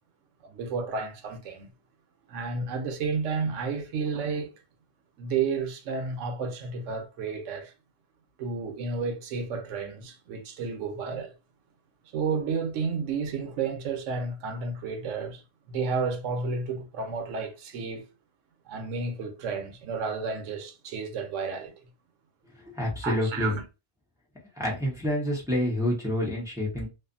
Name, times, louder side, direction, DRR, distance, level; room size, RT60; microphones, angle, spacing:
voice 1, 0.4-1.7 2.3-4.5 5.2-7.7 8.4-11.3 12.1-15.4 15.7-18.1 18.7-21.7 23.0-23.6, right 5 dB, 80° right, 1.0 m, -31 dB
voice 2, 22.6-23.5 24.6-26.9, left 1 dB, 5° right, 0.8 m, -28 dB
2.6 x 2.4 x 2.5 m
omnidirectional pair, 1.3 m